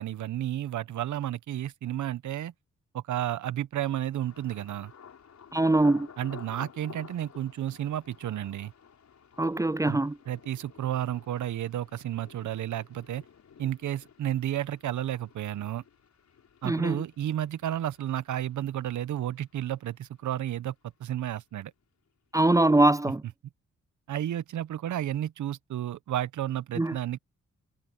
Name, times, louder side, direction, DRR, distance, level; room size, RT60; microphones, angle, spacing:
voice 1, 0.0-2.5 2.9-4.9 6.2-8.7 9.8-10.0 10.3-13.2 13.6-15.8 16.6-20.7 21.0-21.7 24.1-27.2, right 12 dB, 75° right, 1.1 m, -32 dB
Thunder, 4.2-20.0 20.2-20.9 21.3-21.5, left 7 dB, 65° left, 5.1 m, -52 dB
voice 2, 5.5-6.1 9.4-10.2 16.6-17.0 22.3-23.2 26.8-27.0, right 2 dB, 10° right, 0.4 m, -23 dB
supercardioid pair, 45°, 30 cm